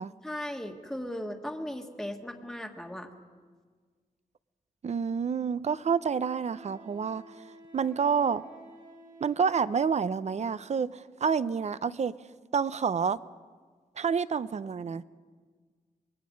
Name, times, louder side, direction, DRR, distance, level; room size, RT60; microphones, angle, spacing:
voice 1, 0.2-3.1, left 1 dB, ahead, 3 dB, 1.5 m, -37 dB
voice 2, 4.8-7.2 7.7-8.4 9.2-12.2 12.5-13.2 14.0-15.0, right 6 dB, 50° right, 16 dB, 0.6 m, -28 dB
Wind instrument woodwind instrument, 6.2-10.2, right 2 dB, 65° right, 4.6 m, -53 dB
27.0 x 22.0 x 5.2 m, 1.5 s
wide cardioid pair, 135°, 15 cm